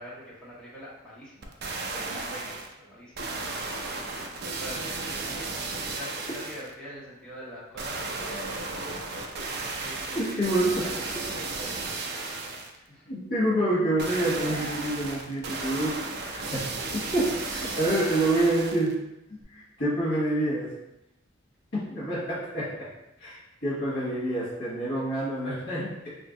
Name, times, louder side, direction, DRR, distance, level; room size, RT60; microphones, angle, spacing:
voice 1, 0.0-1.5 1.9-3.1 4.5-5.3 5.8-9.5 9.7-13.0, equal, 5° left, -9 dB, 0.8 m, -44 dB
sound 1, 1.4-2.7 3.1-6.7 7.8-12.7 14.0-18.9 19.4-19.5, right 3 dB, 50° right, 0.4 m, -34 dB
voice 2, 10.1-10.9 13.1-16.0 16.3-16.6 16.9-19.0 19.3-20.7 21.7-22.9 23.2-26.2, right 1 dB, 55° left, -10 dB, 1.1 m, -27 dB
2.8 x 2.5 x 3.6 m, 0.88 s
head